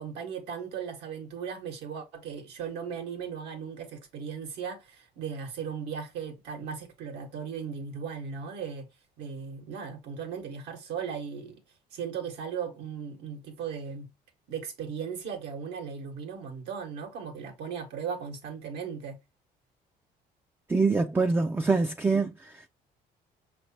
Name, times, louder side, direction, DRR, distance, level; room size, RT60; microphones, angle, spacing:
voice 1, 0.0-8.9 9.2-11.6 11.9-14.1 14.5-19.2, right 7 dB, 85° right, 1.6 m, -37 dB
voice 2, 20.7-22.5, right 4 dB, 10° right, 0.4 m, -25 dB
5.9 x 3.2 x 2.8 m
cardioid pair, 110°, 17 cm